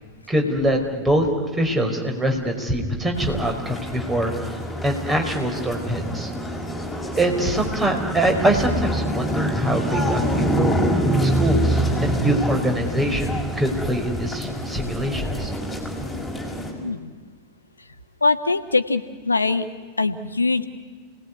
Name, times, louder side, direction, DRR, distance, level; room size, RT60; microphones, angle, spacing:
voice 1, 0.3-1.3 1.6-4.6 4.8-6.3 7.2-15.5, right 1 dB, 15° right, 4 dB, 5.3 m, -24 dB
sound 1, 3.1-16.7, equal, 5° left, 5.9 m, -26 dB
voice 2, 16.8-17.1 18.2-19.7 20.0-20.6, left 3 dB, 80° left, 10 dB, 1.5 m, -22 dB
29.5 x 20.0 x 9.8 m, 1.5 s
figure-of-eight pair, 90°, 0 cm